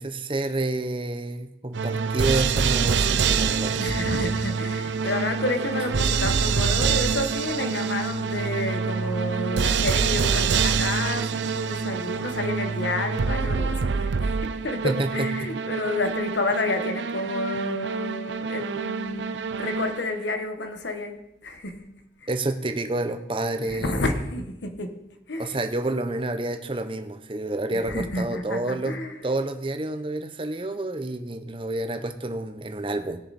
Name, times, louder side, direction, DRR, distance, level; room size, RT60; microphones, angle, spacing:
voice 1, 0.0-4.0 14.8-15.3 22.3-24.0 25.4-29.0 29.2-33.2, right 2 dB, 30° right, 7 dB, 0.8 m, -29 dB
sound 1, 1.7-20.2, right 5 dB, 80° right, 0.5 m, -26 dB
voice 2, 3.8-22.3 23.6-25.0 25.3-25.6 27.8-29.2, left 2 dB, 75° left, 7 dB, 1.3 m, -30 dB
19.5 x 6.8 x 4.1 m, 0.89 s
head